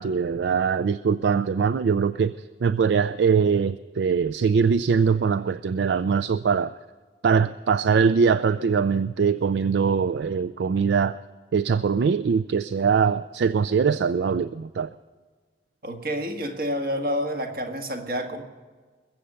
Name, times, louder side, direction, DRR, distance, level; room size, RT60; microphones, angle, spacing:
voice 1, 0.0-2.3 2.6-6.7 7.2-11.2 11.5-14.9, right 6 dB, 75° right, 15 dB, 0.4 m, -22 dB
voice 2, 15.8-18.4, equal, 55° right, 4 dB, 1.7 m, -29 dB
21.5 x 7.6 x 6.7 m, 1.4 s
head